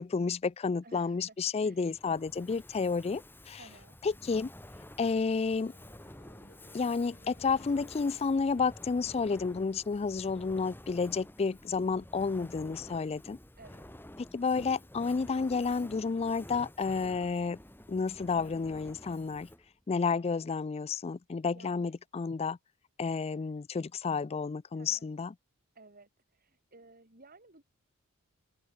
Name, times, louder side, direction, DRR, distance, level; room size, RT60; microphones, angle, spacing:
voice 1, 0.0-3.2 3.5-3.6 4.0-4.5 5.0-5.7 6.7-13.4 14.3-17.6 17.9-19.5 19.9-22.6 23.0-25.3, left 4 dB, 30° left, 0.3 m, -31 dB
voice 2, 0.8-1.4 1.6-1.9 3.6-4.0 13.6-13.9 21.5-22.0 23.6-23.7 24.7-25.1 25.8-27.6, right 3 dB, 40° right, 3.5 m, -56 dB
Fire, 1.8-19.7, left 1 dB, 10° left, 3.0 m, -50 dB
sound 1, 4.6-11.7, left 2 dB, 45° left, 5.9 m, -62 dB
head